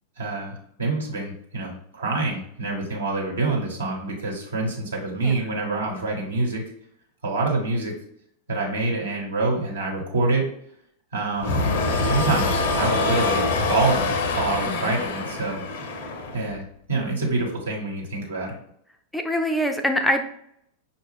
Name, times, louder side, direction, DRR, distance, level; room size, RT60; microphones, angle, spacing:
voice 1, 0.2-6.6 7.2-8.0 8.5-10.5 11.1-11.7 12.0-15.6 16.3-18.5, right 3 dB, 70° right, -1 dB, 1.2 m, -26 dB
sound 1, 11.4-16.6, left 3 dB, 55° left, 0.6 m, -25 dB
voice 2, 14.7-15.0 19.1-20.2, equal, 5° left, 5 dB, 0.4 m, -24 dB
5.6 x 2.3 x 3.5 m, 0.68 s
figure-of-eight pair, 90°, 0 cm